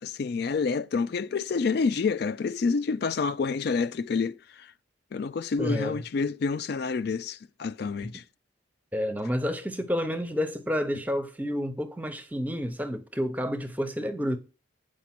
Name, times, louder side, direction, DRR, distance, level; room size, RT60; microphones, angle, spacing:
voice 1, 0.0-4.7 5.1-8.2, left 4 dB, 50° left, 0.3 m, -28 dB
voice 2, 5.6-6.0 8.9-14.4, equal, 10° right, 0.8 m, -30 dB
8.4 x 5.1 x 5.9 m
head